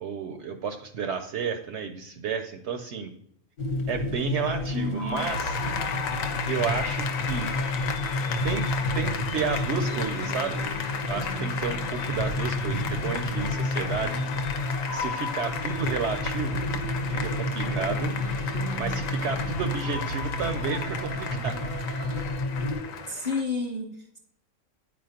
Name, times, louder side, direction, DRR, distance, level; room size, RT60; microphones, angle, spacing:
voice 1, 0.0-3.1 3.9-5.6 6.5-7.5 8.4-10.6 11.1-14.2 14.9-16.6 17.1-18.1 18.8-21.5, right 6 dB, 65° right, 7 dB, 0.7 m, -31 dB
sound 1, 3.6-22.8, left 2 dB, 55° left, 1.1 m, -31 dB
voice 2, 4.7-5.2 23.1-24.2, left 3 dB, 35° left, 1 dB, 0.6 m, -31 dB
Applause, 5.2-23.4, left 7 dB, 70° left, 1.0 m, -34 dB
sound 2, 5.3-22.2, right 4 dB, 85° right, 1.1 m, -38 dB
9.4 x 4.4 x 2.8 m, 0.72 s
omnidirectional pair, 1.5 m